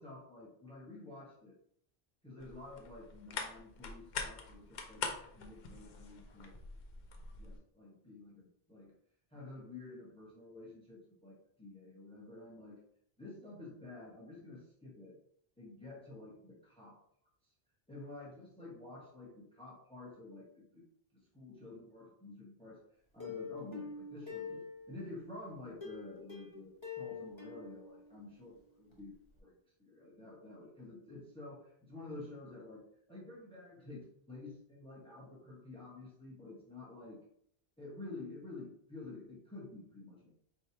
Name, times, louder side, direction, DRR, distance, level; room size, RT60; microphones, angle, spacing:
voice 1, 0.0-1.6 2.2-5.0 5.3-6.6 7.4-8.9 9.3-12.8 13.2-15.2 15.6-17.0 17.9-20.8 21.1-22.8 23.1-29.5 29.8-37.2 37.8-40.3, left 2 dB, 5° left, -4 dB, 0.9 m, -50 dB
sound 1, 2.4-7.6, left 4 dB, 55° left, 0.7 m, -44 dB
Plucked string instrument, 23.2-25.2 25.8-28.6 28.9-29.0 29.4-29.5, left 6 dB, 30° left, 1.1 m, -46 dB
4.5 x 3.1 x 2.8 m, 0.67 s
omnidirectional pair, 1.1 m